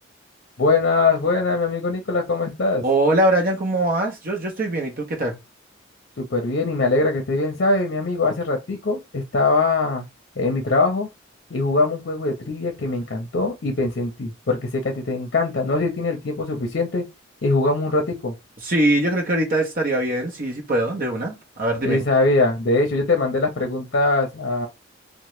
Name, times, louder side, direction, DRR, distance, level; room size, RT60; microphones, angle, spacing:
voice 1, 0.6-2.8 6.2-10.0 10.4-11.1 11.5-17.0 17.4-18.3 21.8-24.7, left 3 dB, 55° left, 0.6 m, -22 dB
voice 2, 2.8-5.3 18.6-22.0, right 1 dB, 50° right, 0.7 m, -22 dB
2.8 x 2.1 x 3.0 m
head